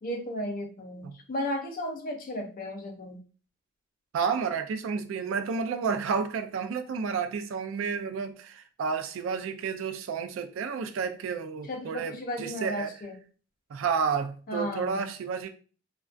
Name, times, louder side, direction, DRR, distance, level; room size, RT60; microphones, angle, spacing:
voice 1, 0.0-3.2 11.7-13.2 14.5-15.1, equal, 45° left, 0.5 m, -34 dB
voice 2, 4.1-12.9 13.7-15.5, right 6 dB, 70° right, 0.3 m, -31 dB
2.3 x 2.2 x 2.4 m
head